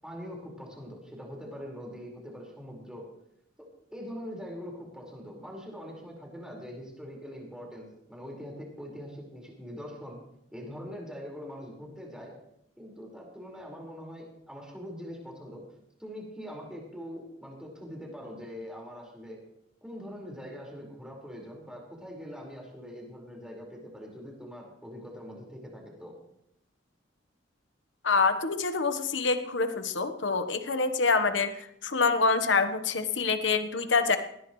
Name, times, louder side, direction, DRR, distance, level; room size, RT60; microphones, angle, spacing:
voice 1, 0.0-3.1 3.6-10.2 10.5-12.4 12.8-15.6 16.0-19.4 19.8-26.1, equal, 5° right, -2 dB, 4.9 m, -43 dB
voice 2, 28.0-34.2, left 4 dB, 70° left, 8 dB, 1.2 m, -26 dB
20.0 x 17.5 x 3.2 m, 0.76 s
head